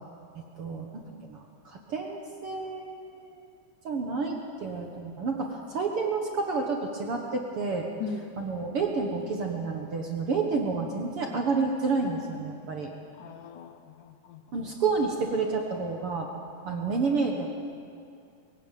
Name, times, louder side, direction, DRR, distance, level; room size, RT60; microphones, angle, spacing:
voice 1, 0.6-1.0 1.3-3.4 3.8-7.9 8.4-12.9 14.5-16.3 16.7-17.5, right 4 dB, 55° right, 2 dB, 1.8 m, -30 dB
voice 2, 8.0-8.3 13.1-14.7 16.7-16.8, left 5 dB, 70° left, 8 dB, 2.2 m, -40 dB
22.5 x 15.5 x 9.1 m, 2.5 s
omnidirectional pair, 4.1 m